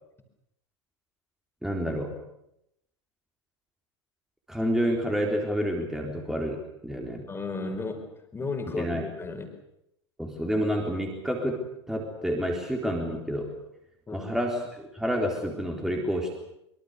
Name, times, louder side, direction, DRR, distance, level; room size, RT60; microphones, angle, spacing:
voice 1, 1.6-2.2 4.5-7.2 8.7-9.0 10.2-13.6 14.1-16.4, equal, 5° right, 1 dB, 3.9 m, -29 dB
voice 2, 7.3-8.0 8.3-9.5 14.1-14.3, left 3 dB, 15° left, 5 dB, 4.7 m, -34 dB
24.5 x 23.5 x 6.8 m, 0.80 s
figure-of-eight pair, 85°, 15 cm